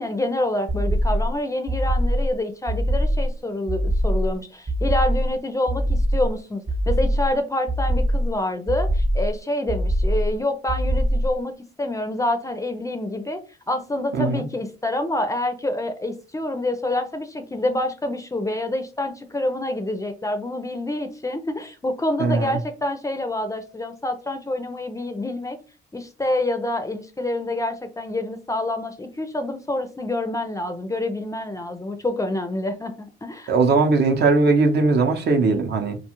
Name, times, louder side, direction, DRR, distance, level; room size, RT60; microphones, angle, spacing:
voice 1, 0.0-25.6 25.9-33.5, left 1 dB, 15° left, 0.4 m, -27 dB
sound 1, 0.7-1.3 1.7-2.3 2.7-3.3 3.7-4.3 4.7-5.3 5.7-6.3 6.7-7.3 7.7-8.3 8.7-9.3 9.7-10.3 10.7-11.3, equal, 30° right, 0.9 m, -22 dB
voice 2, 14.1-14.4 22.2-22.6 33.5-36.0, right 3 dB, 55° right, 0.7 m, -19 dB
2.4 x 2.3 x 2.9 m
cardioid pair, 90°, 20 cm